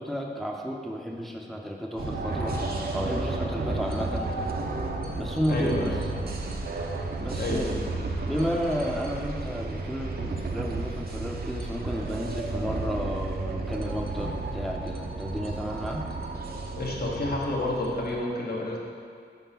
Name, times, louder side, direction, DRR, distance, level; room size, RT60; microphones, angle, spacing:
voice 1, 0.0-2.6 2.9-4.3 5.2-5.9 7.2-7.8 8.2-16.0, equal, ahead, 0 dB, 0.6 m, -32 dB
sound 1, 2.0-18.2, right 2 dB, 55° right, 0.6 m, -32 dB
voice 2, 5.5-5.9 7.3-7.8 16.8-18.8, left 1 dB, 55° left, -3 dB, 1.1 m, -29 dB
5.1 x 3.7 x 5.8 m, 2.3 s
wide cardioid pair, 80°, 19 cm